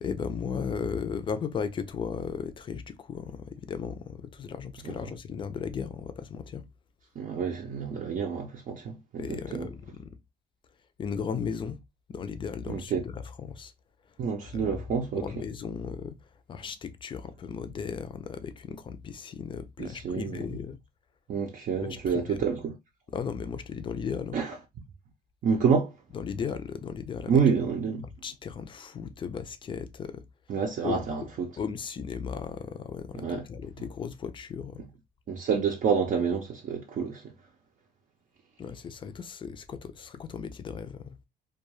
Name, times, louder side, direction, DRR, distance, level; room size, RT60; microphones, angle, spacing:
voice 1, 0.0-6.6 9.2-10.2 11.0-11.8 12.1-13.7 14.5-14.8 15.2-16.2 16.5-20.8 21.8-22.4 23.1-24.4 26.1-27.4 28.0-30.2 30.8-31.1 31.6-34.8 38.6-41.2, left 6 dB, 30° left, 0.4 m, -36 dB
voice 2, 7.2-9.7 12.7-13.0 14.2-15.3 19.8-20.4 21.3-22.8 24.3-24.6 25.4-25.9 27.3-28.0 30.5-31.5 33.1-33.4 35.3-37.2, right 6 dB, 50° right, 0.5 m, -28 dB
2.3 x 2.2 x 2.9 m
cardioid pair, 110°, 17 cm